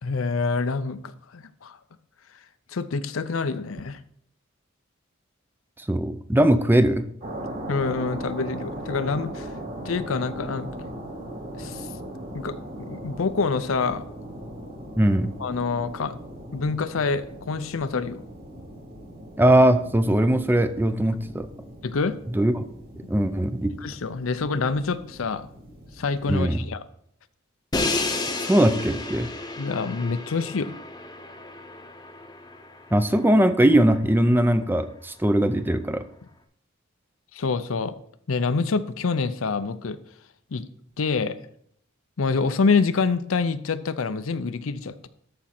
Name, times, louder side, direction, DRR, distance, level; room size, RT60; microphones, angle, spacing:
voice 1, 0.0-1.8 2.7-4.0 7.7-9.5 9.8-10.9 11.5-11.9 12.3-14.1 15.4-16.2 16.5-18.2 21.8-22.2 23.8-25.5 26.0-26.8 29.6-30.8 37.3-37.9 38.3-40.0 40.5-40.7 41.0-41.4 42.2-45.1, left 4 dB, 80° left, 12 dB, 0.6 m, -26 dB
voice 2, 5.8-7.0 15.0-15.3 19.4-21.5 22.3-22.6 23.1-23.7 26.3-26.6 28.4-29.3 32.9-36.0, right 1 dB, 10° right, 10 dB, 0.5 m, -20 dB
sound 1, 7.2-26.5, right 1 dB, 45° right, 3.1 m, -39 dB
Crash cymbal, 27.7-33.7, left 2 dB, 20° left, 0.8 m, -32 dB
13.5 x 5.2 x 4.3 m, 0.69 s
head